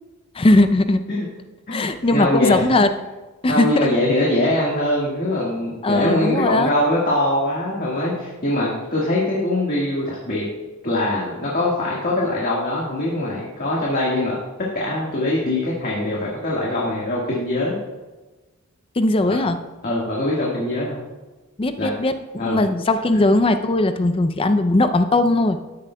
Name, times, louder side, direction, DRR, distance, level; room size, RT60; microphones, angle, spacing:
voice 1, 0.4-1.0 1.7-2.9 3.4-3.9 5.8-6.7 19.0-19.6 21.6-22.2 22.4-25.6, left 2 dB, 25° left, 10 dB, 0.4 m, -18 dB
voice 2, 2.1-2.8 3.5-10.4 10.8-14.4 14.7-17.8 19.2-19.4 19.8-21.0 21.8-21.9 22.3-22.6, left 1 dB, 40° left, -5 dB, 1.6 m, -22 dB
13.5 x 9.7 x 2.2 m, 1.2 s
head